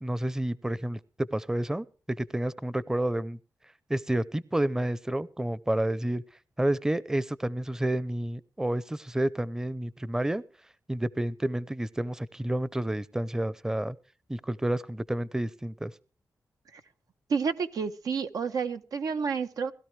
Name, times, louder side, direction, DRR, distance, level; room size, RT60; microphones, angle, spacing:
voice 1, 0.0-1.9 2.2-3.4 3.9-6.2 6.6-10.4 10.9-14.0 14.3-15.9, right 1 dB, 10° right, 0.6 m, -30 dB
voice 2, 17.3-19.7, right 5 dB, 90° right, 1.1 m, -30 dB
20.5 x 13.0 x 3.3 m
wide cardioid pair, 90°, 6 cm